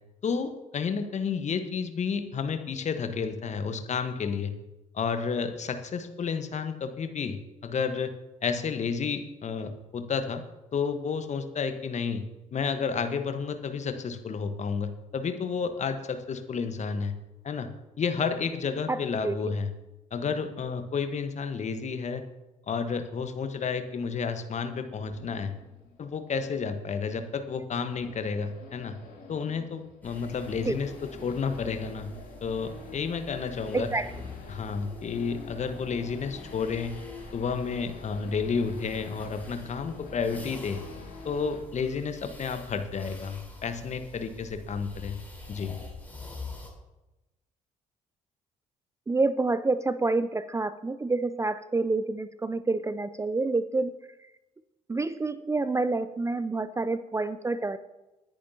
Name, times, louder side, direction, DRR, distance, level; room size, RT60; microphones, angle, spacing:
voice 1, 0.2-4.5 4.9-8.1 8.4-10.4 10.7-12.2 12.5-17.1 17.4-17.7 18.0-19.7 20.1-22.2 22.7-25.5 26.0-28.9 29.3-30.9 31.2-32.1 32.4-33.9 34.5-37.0 37.3-40.8 41.2-45.2 45.5-45.8, left 5 dB, 40° left, 8 dB, 1.3 m, -31 dB
voice 2, 18.9-19.4 30.7-30.8 33.7-34.1 49.1-53.9 54.9-57.8, right 3 dB, 15° right, 14 dB, 0.5 m, -28 dB
Race car auto racing / Idling / Accelerating revving vroom, 25.0-41.6, left 4 dB, 55° left, 3.0 m, -47 dB
sound 1, 30.0-46.7, left 2 dB, 10° left, 4.3 m, -46 dB
20.0 x 10.0 x 2.9 m, 1.0 s
figure-of-eight pair, 45°, 18 cm